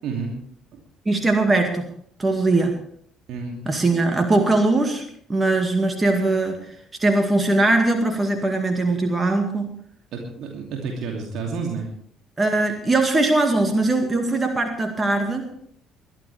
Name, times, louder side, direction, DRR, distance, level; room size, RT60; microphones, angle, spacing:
voice 1, 0.0-0.3 3.3-3.6 10.1-11.9, right 5 dB, 55° right, 0 dB, 2.8 m, -30 dB
voice 2, 1.1-1.9 2.2-2.7 3.7-5.0 5.3-9.7 12.4-15.5, right 2 dB, 20° right, 4 dB, 2.1 m, -21 dB
22.0 x 12.0 x 3.5 m, 0.64 s
figure-of-eight pair, 50°, 0 cm